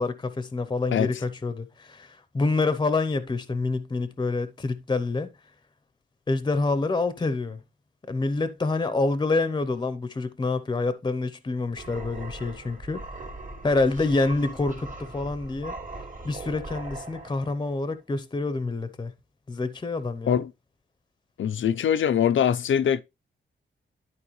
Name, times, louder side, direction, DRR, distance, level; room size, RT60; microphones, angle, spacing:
voice 1, 0.0-5.3 6.3-7.6 8.1-13.0 13.6-15.8 16.2-19.1 19.5-20.4, left 3 dB, 20° left, 0.8 m, -27 dB
sound 1, 11.8-17.8, right 2 dB, 40° right, 2.2 m, -40 dB
voice 2, 21.4-23.0, left 8 dB, 75° left, 0.6 m, -22 dB
11.5 x 4.6 x 3.2 m
wide cardioid pair, 130°, 20 cm